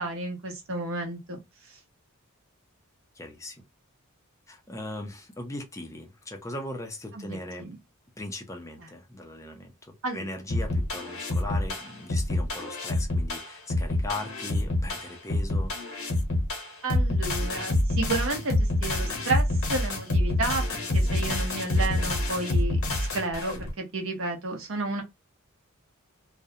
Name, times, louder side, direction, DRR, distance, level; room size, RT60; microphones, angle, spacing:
voice 1, 0.0-1.4 1.7-1.8 7.1-7.3 7.6-7.8 10.0-10.3 16.8-25.0, right 2 dB, 65° right, 0.8 m, -32 dB
voice 2, 3.1-3.6 4.5-7.7 8.2-15.7, left 1 dB, 15° left, 0.5 m, -39 dB
sound 1, 10.5-23.7, left 1 dB, 65° left, 1.0 m, -27 dB
2.4 x 2.1 x 2.7 m
head